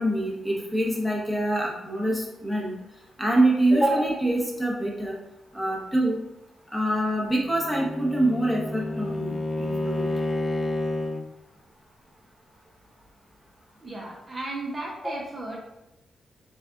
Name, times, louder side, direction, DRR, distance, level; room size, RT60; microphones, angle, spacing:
voice 1, 0.0-2.7 3.2-5.2 5.5-6.2 6.7-9.3 9.6-10.0, right 1 dB, 5° left, -3 dB, 0.8 m, -25 dB
Bowed string instrument, 7.4-11.3, left 2 dB, 25° left, 0.3 m, -30 dB
voice 2, 13.8-15.6, right 2 dB, 25° right, -3 dB, 0.6 m, -35 dB
4.0 x 3.4 x 2.4 m, 0.92 s
wide cardioid pair, 150°, 0 cm